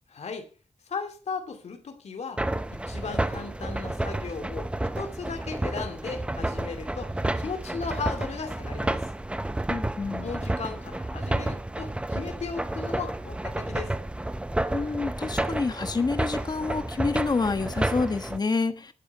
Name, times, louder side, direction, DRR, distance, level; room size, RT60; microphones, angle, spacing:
voice 1, 0.1-0.5 0.9-2.4 2.7-4.7 4.9-9.1 10.2-13.9, left 5 dB, 70° left, 2.6 m, -36 dB
sound 1, 2.4-18.4, right 1 dB, 10° right, 0.8 m, -31 dB
voice 2, 9.7-10.3 14.7-18.9, left 4 dB, 35° left, 1.2 m, -28 dB
11.5 x 9.1 x 5.8 m
wide cardioid pair, 125°, 12 cm